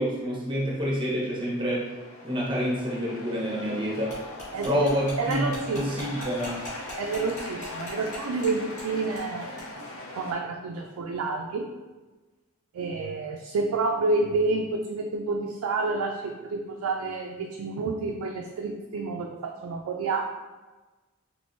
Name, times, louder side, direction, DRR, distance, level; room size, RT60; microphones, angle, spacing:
voice 1, 0.0-2.0 2.2-4.2 4.6-5.4 5.7-6.6, equal, 20° right, -4 dB, 0.7 m, -27 dB
sound 1, 1.4-10.3, left 2 dB, 70° left, 0.6 m, -40 dB
sound 2, 4.1-8.5 8.8-8.9 9.2-9.3 9.6-9.7, equal, 35° left, 1.5 m, -40 dB
voice 2, 5.2-6.2 7.0-9.5 10.1-11.7 12.7-20.3, right 3 dB, 90° right, 2 dB, 0.3 m, -29 dB
3.5 x 3.0 x 2.6 m, 1.2 s
head